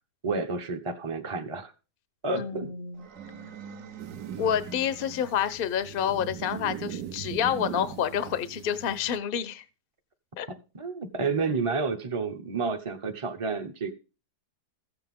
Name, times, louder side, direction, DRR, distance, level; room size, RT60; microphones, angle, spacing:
voice 1, 0.2-1.7 2.2-2.7 10.7-13.9, right 4 dB, 25° right, 3 dB, 0.8 m, -30 dB
voice 2, 2.3-3.1 4.4-9.6 10.4-10.5, left 9 dB, 45° left, 14 dB, 0.8 m, -28 dB
sound 1, 2.9-5.8, right 6 dB, 55° right, 1.1 m, -45 dB
sound 2, 4.0-9.2, right 9 dB, 80° right, 1.6 m, -40 dB
14.5 x 8.0 x 3.7 m, 0.32 s
omnidirectional pair, 1.8 m